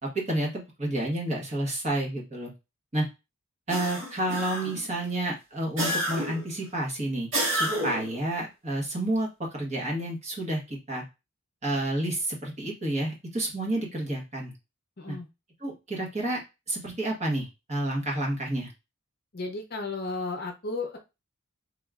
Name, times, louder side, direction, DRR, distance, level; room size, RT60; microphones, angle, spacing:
voice 1, 0.0-2.5 2.9-3.1 3.7-11.0 11.6-14.5 15.1-15.2 15.6-16.4 16.7-18.7, right 1 dB, 30° right, -1 dB, 1.1 m, -30 dB
sound 1, 3.7-4.9 5.8-6.5 7.3-8.1, right 1 dB, 60° right, 1.5 m, -29 dB
voice 2, 15.0-15.3 19.3-21.0, left 3 dB, 45° left, 4 dB, 0.6 m, -33 dB
3.5 x 3.1 x 2.4 m, 0.25 s
head